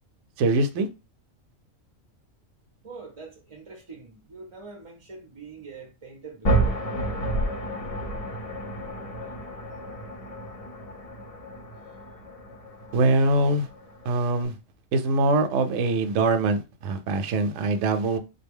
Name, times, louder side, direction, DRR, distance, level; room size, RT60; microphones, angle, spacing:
voice 1, 0.4-0.9 12.9-13.7 14.1-14.5 14.9-18.2, right 2 dB, 70° right, 0.9 m, -23 dB
voice 2, 2.8-6.8, right 4 dB, 35° right, 0.5 m, -43 dB
sound 1, 6.4-14.4, right 2 dB, 40° left, 0.5 m, -31 dB
3.8 x 2.2 x 3.5 m
omnidirectional pair, 1.4 m